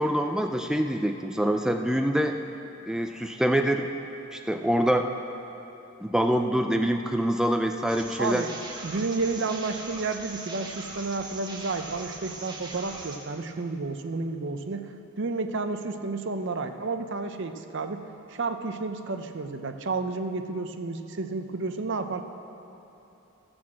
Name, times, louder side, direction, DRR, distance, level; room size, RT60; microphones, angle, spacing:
voice 1, 0.0-2.4 2.9-3.9 4.3-5.1 6.0-8.4, equal, 5° right, 5 dB, 0.3 m, -25 dB
sound 1, 7.9-13.2, right 2 dB, 20° right, 1.1 m, -41 dB
voice 2, 8.2-8.5 8.8-14.9 15.2-22.2, right 3 dB, 60° right, 8 dB, 0.6 m, -31 dB
14.0 x 6.2 x 7.4 m, 3.0 s
head